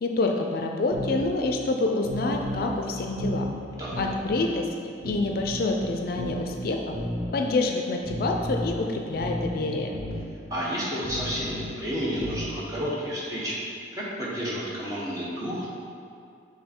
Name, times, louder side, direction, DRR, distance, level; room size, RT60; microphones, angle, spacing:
voice 1, 0.0-3.5 4.0-4.7 5.0-6.9 7.3-10.0, left 2 dB, 55° left, 3 dB, 0.4 m, -27 dB
sound 1, 0.9-1.2 2.0-2.8 3.2-3.5 3.9-4.3 5.0-5.8 6.2-6.5 6.9-7.3 8.0-8.7 9.2-9.5 9.9-10.2 11.0-11.7 12.2-12.5, equal, 55° right, 1.4 m, -33 dB
voice 2, 10.5-13.6 14.2-15.7, equal, 20° right, -6 dB, 1.1 m, -31 dB
6.6 x 3.5 x 4.4 m, 2.4 s
head